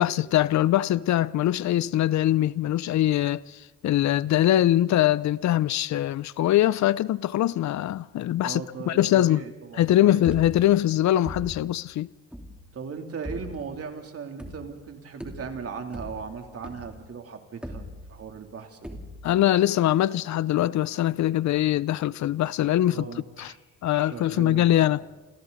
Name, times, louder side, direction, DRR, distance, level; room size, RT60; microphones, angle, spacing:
voice 1, 0.0-9.4 9.8-12.1 19.2-23.1 23.4-23.5 23.8-25.0, left 13 dB, 65° left, 0.6 m, -22 dB
voice 2, 8.4-10.3 12.7-19.0 22.9-23.6 23.9-25.1, right 5 dB, 50° right, 3.3 m, -38 dB
sound 1, 10.3-10.9 11.2-11.8 12.3-12.7 13.2-13.8 14.4-14.9 15.2-17.1 17.6-18.4 18.8-19.4, equal, 5° right, 3.3 m, -39 dB
29.5 x 28.5 x 4.1 m
cardioid pair, 90°, 30 cm